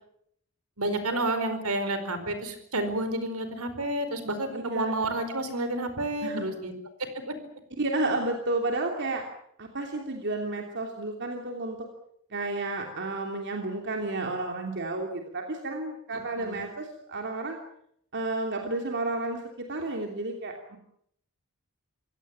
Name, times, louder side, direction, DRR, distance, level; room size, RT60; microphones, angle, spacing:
voice 1, 0.8-6.7 16.1-16.7, right 1 dB, 75° right, 10 dB, 4.7 m, -30 dB
voice 2, 4.5-4.9 6.2-6.4 7.8-9.2 9.6-11.8 12.3-17.6 18.1-20.8, right 2 dB, 55° right, 3 dB, 3.0 m, -31 dB
26.5 x 17.0 x 8.8 m, 0.71 s
head